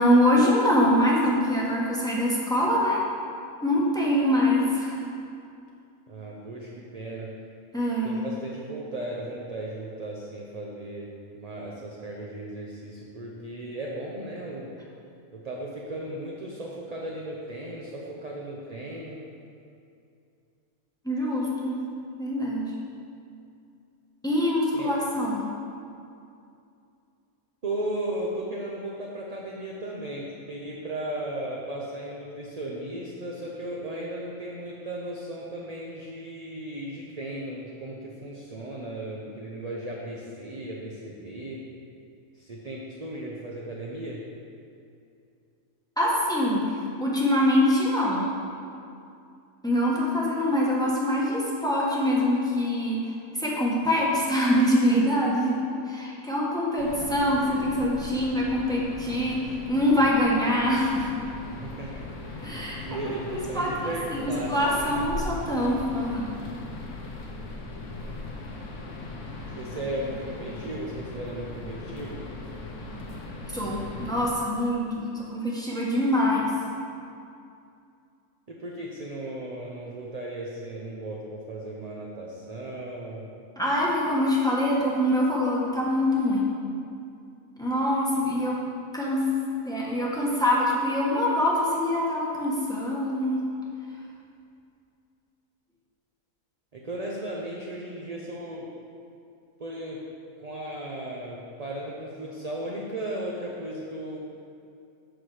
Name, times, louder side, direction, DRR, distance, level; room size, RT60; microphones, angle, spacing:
voice 1, 0.0-3.0 3.6-5.0 7.7-8.2 21.0-21.8 22.2-22.7 24.2-25.5 46.0-46.7 47.0-48.3 49.6-61.1 62.4-62.8 63.1-66.4 73.5-76.5 83.6-86.5 87.6-88.6 88.9-89.3 89.6-93.4, left 1 dB, 5° left, -5 dB, 1.3 m, -24 dB
voice 2, 6.1-7.3 8.0-11.1 11.4-14.7 15.3-19.2 24.7-24.9 27.6-41.6 42.3-44.2 61.5-62.1 62.7-65.0 69.6-72.2 78.5-83.3 96.7-98.7 99.6-100.0 100.4-104.2, right 1 dB, 35° right, -4 dB, 0.7 m, -36 dB
sound 1, 56.8-74.3, left 2 dB, 65° left, 1.2 m, -39 dB
8.1 x 6.1 x 4.8 m, 2.5 s
omnidirectional pair, 1.5 m